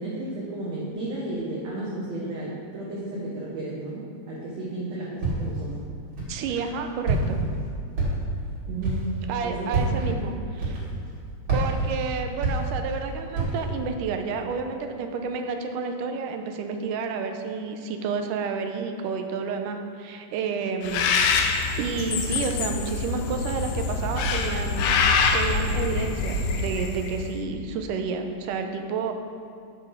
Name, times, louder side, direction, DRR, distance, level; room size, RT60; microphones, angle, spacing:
voice 1, 0.0-5.8 8.7-9.1 9.4-10.2, right 1 dB, 55° right, -6 dB, 2.2 m, -33 dB
Walk footsteps, 5.2-5.7 6.2-6.7 7.0-7.5 7.9-8.4 8.8-9.2 9.7-10.1 10.6-11.1 11.4-13.0 13.3-13.7, right 3 dB, 40° right, 3.1 m, -26 dB
voice 2, 6.3-7.4 9.3-10.8 11.5-21.2 21.5-24.9 25.3-29.1, right 5 dB, 75° right, 5 dB, 2.2 m, -30 dB
Bird, 20.8-27.2, left 4 dB, 90° left, 2.6 m, -25 dB
9.9 x 6.1 x 6.5 m, 2.5 s
omnidirectional pair, 4.1 m